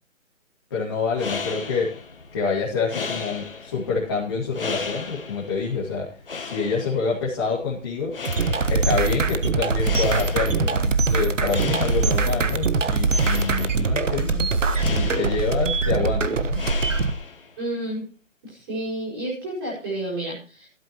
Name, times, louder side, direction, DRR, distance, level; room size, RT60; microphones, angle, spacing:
voice 1, 0.7-1.9 2.3-6.1 6.4-8.1 8.7-14.5 14.8-16.6, left 4 dB, 20° left, -7 dB, 2.2 m, -27 dB
sound 1, 1.0-17.6, left 4 dB, 45° left, 1.7 m, -36 dB
sound 2, 8.2-17.1, right 3 dB, 70° right, 1.2 m, -22 dB
voice 2, 17.6-18.0 18.4-20.7, right 1 dB, 20° right, -6 dB, 5.0 m, -30 dB
15.5 x 12.0 x 3.0 m, 0.36 s
hypercardioid pair, 175°, 39 cm